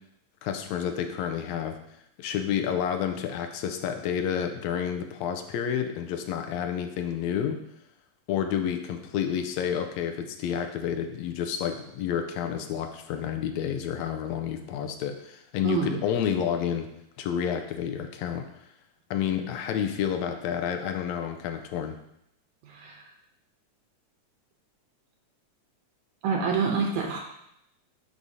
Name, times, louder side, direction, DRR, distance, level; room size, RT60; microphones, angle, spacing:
voice 1, 0.4-1.8 2.2-7.6 8.3-16.9 17.2-18.4 19.1-22.0, left 8 dB, 75° left, 6 dB, 1.7 m, -30 dB
voice 2, 15.6-16.0 22.6-23.0 26.2-27.2, right 5 dB, 75° right, 0 dB, 2.0 m, -27 dB
10.5 x 4.9 x 2.7 m, 0.78 s
omnidirectional pair, 3.6 m